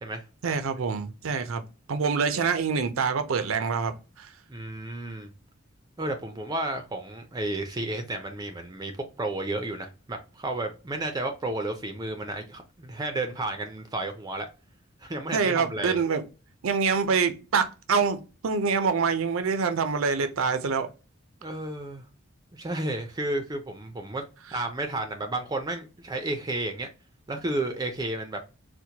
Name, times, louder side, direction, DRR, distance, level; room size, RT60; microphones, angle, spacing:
voice 1, 0.4-1.6 1.9-4.3 15.3-16.2 16.6-20.9, right 5 dB, 80° right, 0.5 m, -25 dB
voice 2, 4.5-5.3 6.0-14.5 15.0-16.0 21.4-22.1 22.5-24.2 24.5-26.9 27.3-28.4, right 2 dB, 20° right, 0.4 m, -32 dB
4.3 x 2.1 x 2.7 m
head